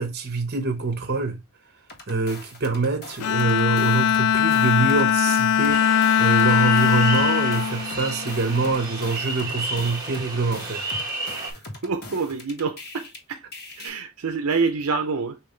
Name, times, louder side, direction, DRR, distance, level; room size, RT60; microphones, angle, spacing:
voice 1, 0.0-1.4 2.1-10.9, right 3 dB, 45° right, 1.1 m, -25 dB
sound 1, 1.9-4.2 4.5-13.2 13.5-13.9, left 2 dB, 45° left, 1.7 m, -42 dB
Bowed string instrument, 3.2-8.7, left 8 dB, 85° left, 0.4 m, -21 dB
sound 2, 5.7-11.5, right 2 dB, 20° right, 1.6 m, -32 dB
voice 2, 11.5-13.5 13.7-15.4, right 4 dB, 75° right, 0.6 m, -27 dB
5.4 x 3.0 x 3.2 m
head